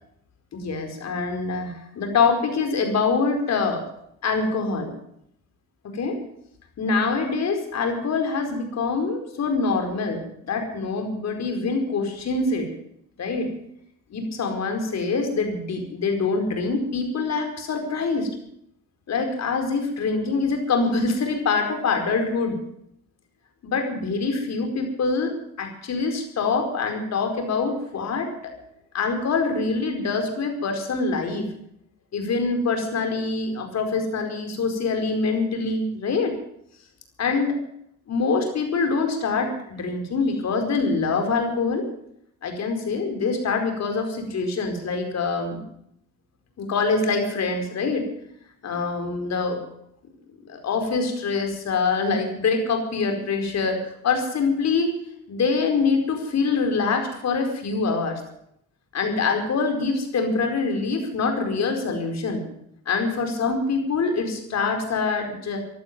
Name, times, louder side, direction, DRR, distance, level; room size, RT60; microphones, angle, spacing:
voice 1, 0.5-3.8 4.2-4.9 5.9-6.2 6.8-12.7 13.2-13.5 14.1-18.3 19.1-22.6 23.6-25.3 25.6-28.3 28.9-31.5 32.1-36.4 37.2-37.5 38.1-41.9 42.4-45.6 46.6-48.1 48.6-49.6 50.5-54.9 55.3-58.2 58.9-62.4 62.9-65.6, left 4 dB, 60° left, 5 dB, 4.7 m, -25 dB
15.5 x 11.5 x 7.3 m, 0.74 s
cardioid pair, 90°, 30 cm